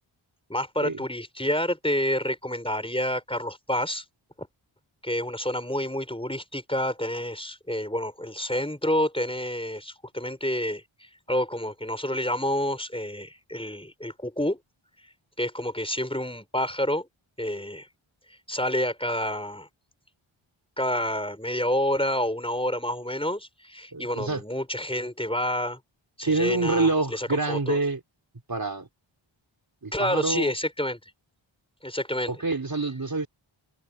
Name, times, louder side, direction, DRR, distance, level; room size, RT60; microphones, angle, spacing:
voice 1, 0.5-4.0 5.0-14.6 15.4-17.1 17.4-17.9 18.5-19.7 20.8-25.8 26.2-27.8 29.9-31.0 31.8-32.4, left 1 dB, 10° left, 5.7 m, -28 dB
voice 2, 23.9-24.4 26.2-28.0 28.5-28.9 29.8-30.5 32.3-33.3, right 3 dB, 45° right, 3.9 m, -26 dB
wide cardioid pair, 70°, 50 cm